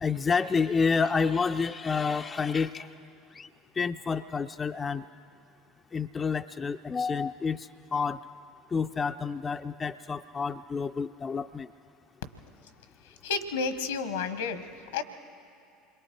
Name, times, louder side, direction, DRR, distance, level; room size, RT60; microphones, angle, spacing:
voice 1, 0.0-2.9 3.3-3.5 3.8-5.0 5.9-8.2 8.7-11.7, left 5 dB, 25° left, 7 dB, 0.5 m, -29 dB
voice 2, 13.2-15.0, left 5 dB, 80° left, 12 dB, 1.2 m, -31 dB
27.5 x 22.5 x 4.6 m, 2.5 s
hypercardioid pair, 75°, 0 cm